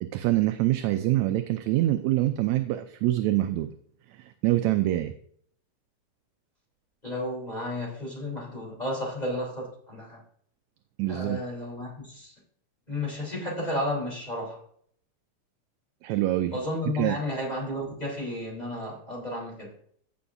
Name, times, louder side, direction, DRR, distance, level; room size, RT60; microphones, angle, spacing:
voice 1, 0.0-3.7 4.2-5.1 11.0-11.4 16.0-16.6 17.0-17.2, right 15 dB, 80° right, 8 dB, 1.7 m, -25 dB
voice 2, 7.0-10.2 11.1-12.3 12.9-14.6 16.5-19.7, left 1 dB, 15° left, -3 dB, 3.1 m, -32 dB
15.5 x 7.0 x 2.6 m, 0.63 s
omnidirectional pair, 3.5 m